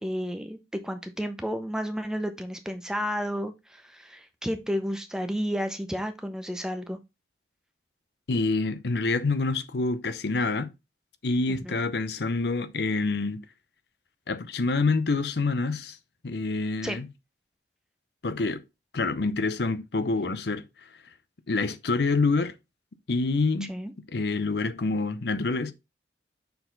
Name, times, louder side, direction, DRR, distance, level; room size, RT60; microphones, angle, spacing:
voice 1, 0.0-7.0 11.6-11.8 16.8-17.0 23.7-23.9, equal, 5° right, 0.6 m, -32 dB
voice 2, 8.3-10.7 11.2-13.4 14.3-16.0 16.2-17.1 18.2-18.6 18.9-20.6 21.5-22.5 23.1-23.7 24.1-25.7, left 3 dB, 65° left, 0.7 m, -27 dB
6.8 x 4.0 x 3.9 m
head